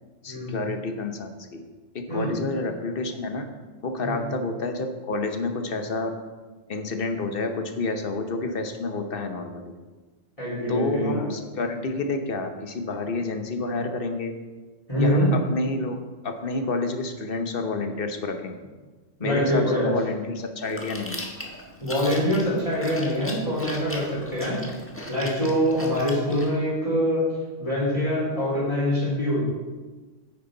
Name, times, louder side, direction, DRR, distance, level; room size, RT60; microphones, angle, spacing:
voice 1, 0.2-1.6 1.9-3.5 3.8-6.2 6.7-9.7 10.7-14.3 15.0-16.0 16.2-18.6 19.2-21.2, left 3 dB, 50° left, 6 dB, 1.1 m, -29 dB
voice 2, 10.4-11.2 14.9-15.3 19.2-19.9 21.8-24.6 25.1-27.2 27.6-29.4, equal, 25° left, -8 dB, 3.9 m, -24 dB
Chewing mastication, 20.6-26.5, left 1 dB, 10° left, 1.3 m, -39 dB
9.8 x 9.5 x 3.9 m, 1.3 s
omnidirectional pair, 1.3 m